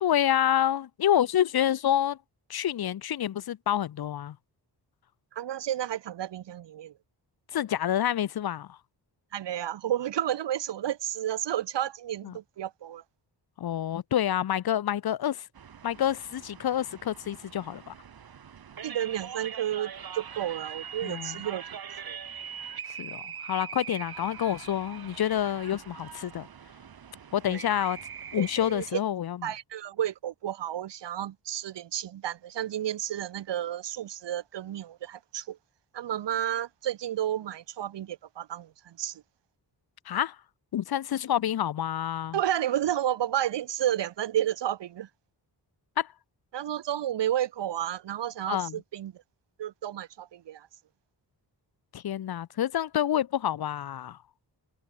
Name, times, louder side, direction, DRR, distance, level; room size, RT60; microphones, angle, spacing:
voice 1, 0.0-2.2 2.5-4.4 7.5-8.8 12.2-12.4 13.6-15.5 15.8-17.9 21.0-21.4 22.9-26.5 27.3-28.0 28.3-29.5 40.1-40.4 40.7-42.4 46.0-46.1 48.5-48.8 51.9-54.2, left 10 dB, 60° left, 0.7 m, -28 dB
voice 2, 5.3-6.9 9.3-13.0 18.8-21.6 22.1-22.2 27.5-27.9 28.4-28.8 29.4-35.6 35.9-39.2 42.3-45.1 46.5-49.1 49.6-50.7, right 11 dB, 80° right, 0.9 m, -31 dB
sound 1, 15.5-28.9, right 7 dB, 60° right, 2.2 m, -42 dB
wide cardioid pair, 150°, 41 cm